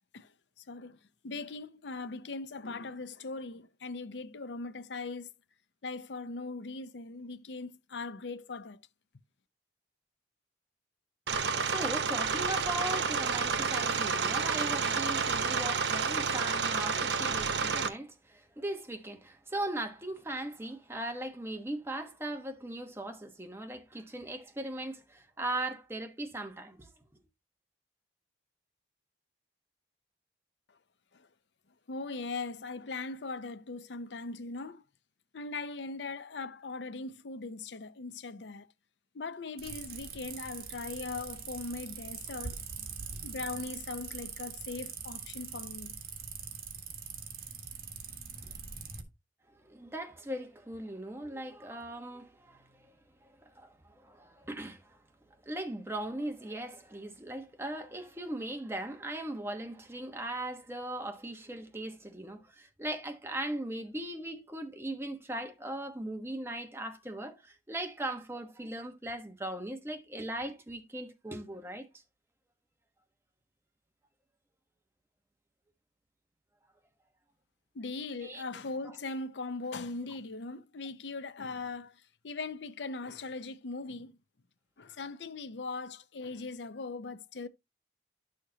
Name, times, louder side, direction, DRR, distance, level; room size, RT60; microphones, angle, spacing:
voice 1, 0.7-1.0 1.2-5.3 5.8-8.8 31.1-31.3 31.9-34.8 35.3-38.7 39.1-42.6 43.2-45.9 77.7-84.1 84.8-87.5, left 3 dB, 85° left, 0.7 m, -40 dB
sound 1, 11.3-17.9, right 5 dB, 90° right, 0.9 m, -30 dB
voice 2, 11.4-26.9 49.6-52.7 53.2-55.0 55.4-71.9 78.2-78.4, right 1 dB, 15° right, 1.1 m, -39 dB
sound 2, 39.6-49.0, right 6 dB, 60° right, 1.6 m, -42 dB
11.0 x 6.5 x 2.8 m
head